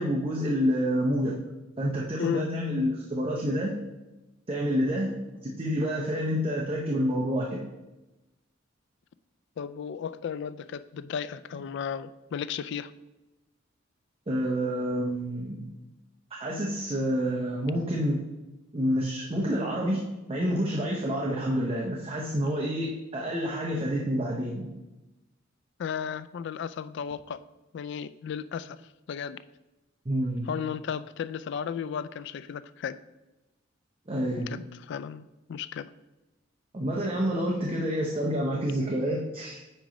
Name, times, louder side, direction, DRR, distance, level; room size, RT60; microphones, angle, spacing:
voice 1, 0.0-1.4 1.8-3.8 4.5-5.1 5.4-7.6 14.3-15.7 16.3-18.2 18.7-24.7 30.1-30.5 34.1-34.7 36.7-39.6, equal, 30° right, -2 dB, 0.7 m, -28 dB
voice 2, 9.6-12.9 25.8-27.4 27.7-28.8 29.1-29.4 30.5-33.0 34.5-34.6 34.9-35.9, left 7 dB, 60° left, 14 dB, 0.3 m, -34 dB
8.7 x 3.1 x 5.0 m, 1.0 s
head